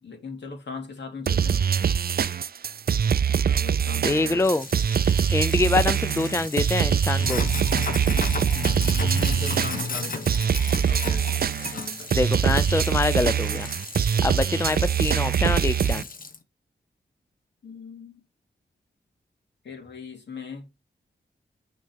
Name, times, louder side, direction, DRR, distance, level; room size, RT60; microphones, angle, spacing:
voice 1, 0.0-1.7 3.2-4.4 8.5-11.3 11.7-12.1 14.5-14.7 17.6-18.2 19.6-20.6, left 4 dB, 70° left, 2.6 m, -39 dB
sound 1, 1.3-16.0, right 8 dB, 55° right, 0.4 m, -23 dB
voice 2, 4.0-4.7 5.3-7.4 12.1-13.7 14.2-16.0, left 3 dB, 15° left, 0.4 m, -25 dB
Sink (filling or washing), 4.4-16.4, left 4 dB, 45° left, 1.2 m, -35 dB
6.4 x 4.3 x 5.2 m
wide cardioid pair, 95°, 19 cm